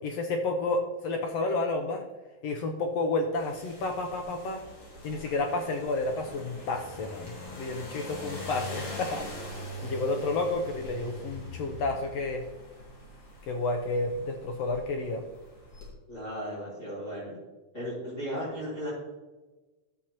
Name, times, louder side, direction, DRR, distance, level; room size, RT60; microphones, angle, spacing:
voice 1, 0.0-2.0 2.4-4.6 5.0-9.3 9.8-12.5 13.4-15.2, left 2 dB, 70° left, 3 dB, 1.7 m, -30 dB
sound 1, 3.3-15.9, left 1 dB, 55° left, 3.3 m, -43 dB
voice 2, 16.1-17.4 17.7-18.9, equal, 25° left, -9 dB, 3.7 m, -35 dB
13.0 x 7.4 x 2.9 m, 1.2 s
omnidirectional pair, 3.4 m